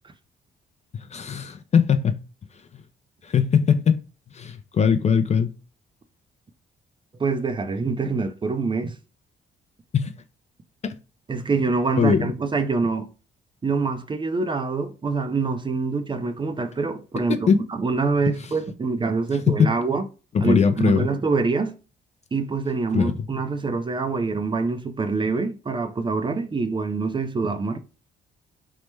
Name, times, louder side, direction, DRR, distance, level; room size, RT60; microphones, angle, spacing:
voice 1, 0.9-2.2 3.2-4.0 4.3-5.5 9.9-10.1 10.8-11.0 12.0-12.3 17.3-17.6 18.3-18.4 19.5-19.7 20.3-21.1 22.9-23.3, left 6 dB, 35° left, 0.4 m, -20 dB
voice 2, 7.2-9.0 11.3-13.1 13.6-17.3 17.7-20.0 20.4-21.8 22.3-27.8, right 4 dB, 25° right, 0.4 m, -25 dB
3.1 x 2.1 x 3.2 m
cardioid pair, 90°, 20 cm